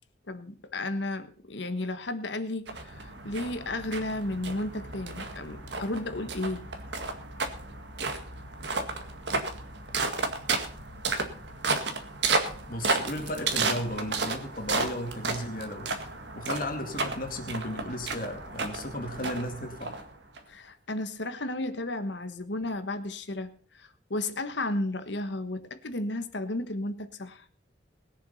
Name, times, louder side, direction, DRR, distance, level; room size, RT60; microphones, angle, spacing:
voice 1, 0.3-6.7 20.5-27.4, left 2 dB, 70° left, 1.3 m, -33 dB
sound 1, 2.7-20.4, right 3 dB, 70° right, 2.0 m, -33 dB
voice 2, 12.7-15.9 16.3-20.0, left 1 dB, 50° left, 2.3 m, -35 dB
20.5 x 7.1 x 5.6 m
head